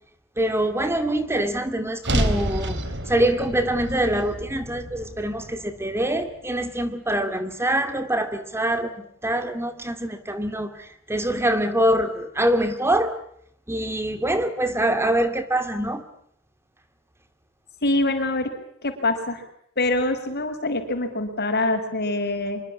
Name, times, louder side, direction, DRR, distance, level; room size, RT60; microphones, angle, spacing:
voice 1, 0.4-2.8 3.1-13.1 13.7-16.0, right 1 dB, 10° right, 9 dB, 2.3 m, -24 dB
sound 1, 2.0-6.3, right 1 dB, 55° right, 3.4 m, -29 dB
voice 2, 17.8-18.5 18.8-19.4 19.8-22.6, left 2 dB, 50° left, 5 dB, 6.0 m, -24 dB
26.0 x 24.0 x 7.3 m, 0.69 s
head